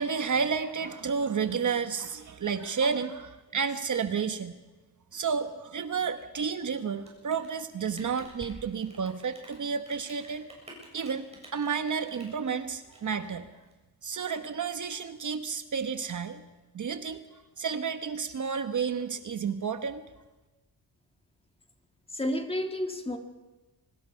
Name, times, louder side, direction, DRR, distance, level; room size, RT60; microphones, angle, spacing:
voice 1, 0.0-4.5 5.1-10.5 10.9-13.5 14.0-16.4 16.7-17.2 17.6-20.0, right 6 dB, 45° right, 9 dB, 1.2 m, -31 dB
Rain, 6.9-13.7, right 1 dB, 15° right, 7.5 m, -51 dB
voice 2, 22.1-23.2, left 1 dB, 15° left, 5 dB, 2.0 m, -30 dB
24.5 x 19.5 x 5.7 m, 1.2 s
cardioid pair, 110°, 40 cm